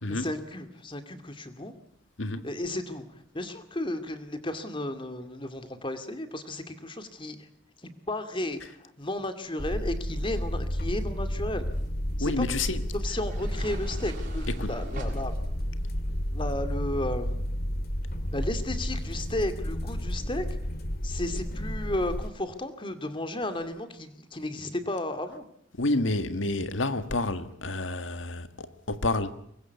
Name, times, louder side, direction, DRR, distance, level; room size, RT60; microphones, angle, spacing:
voice 1, 0.1-1.7 2.4-3.1 3.3-7.5 7.8-11.7 12.2-12.4 12.9-15.3 16.3-17.5 18.3-20.4 21.0-25.5, left 1 dB, 25° left, 2.4 m, -33 dB
sound 1, 9.6-22.3, equal, 55° left, 2.2 m, -31 dB
sound 2, 11.7-17.2, right 1 dB, 45° right, 6.8 m, -43 dB
voice 2, 12.2-12.8 14.6-14.7 25.8-29.3, left 2 dB, 85° left, 1.7 m, -29 dB
24.5 x 21.0 x 8.4 m
head